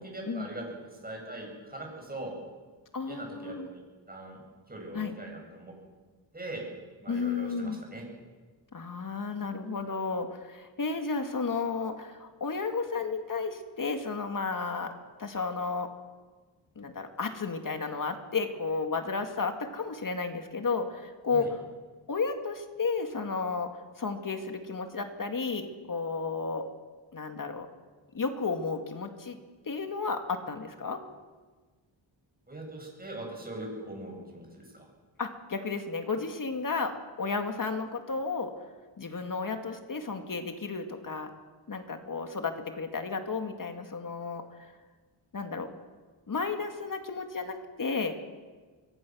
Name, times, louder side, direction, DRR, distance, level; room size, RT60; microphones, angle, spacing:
voice 1, 0.0-2.4 3.0-4.4 4.7-5.7 6.3-6.7 7.0-8.0 21.3-21.5 32.5-34.9, right 1 dB, 20° right, 0 dB, 7.5 m, -41 dB
voice 2, 2.9-3.7 4.9-5.1 7.1-7.8 8.7-15.9 16.8-21.6 22.1-26.7 27.1-27.7 28.1-29.4 29.7-31.0 35.2-38.5 39.0-41.3 41.7-44.7 45.3-45.7 46.3-48.1, left 4 dB, 45° left, 6 dB, 2.1 m, -33 dB
25.5 x 22.5 x 6.3 m, 1.4 s
wide cardioid pair, 120°, 47 cm